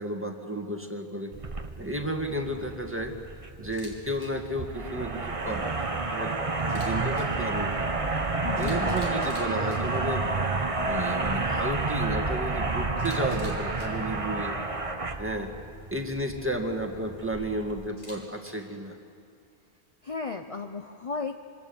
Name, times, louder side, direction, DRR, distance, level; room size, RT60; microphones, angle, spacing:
voice 1, 0.0-1.3 1.8-3.1 3.6-6.3 6.7-7.9 8.6-10.2 10.8-14.6 15.2-15.5 15.9-19.0, right 1 dB, 10° right, 3 dB, 2.0 m, -32 dB
sound 1, 1.3-17.9, right 3 dB, 35° right, 1.2 m, -30 dB
sound 2, 3.1-3.3 3.6-3.7 4.1-4.2 4.5-4.7 5.0-5.2 5.5-5.7 6.0-6.1 6.5-6.6 6.9-7.1 7.4-7.6 7.9-8.1 8.4-8.5 8.9-9.0 9.3-9.5 9.8-10.0 10.3-10.5, right 1 dB, 65° right, 2.0 m, -49 dB
Camera, 3.6-3.9 4.2-4.3 6.6-7.2 8.2-8.3 8.6-9.8 13.0-13.9 17.9-18.5, left 1 dB, 55° left, 4.4 m, -47 dB
voice 2, 8.4-8.8 20.0-21.4, left 4 dB, 35° left, 5 dB, 0.8 m, -34 dB
26.0 x 25.0 x 7.1 m, 2.4 s
omnidirectional pair, 1.1 m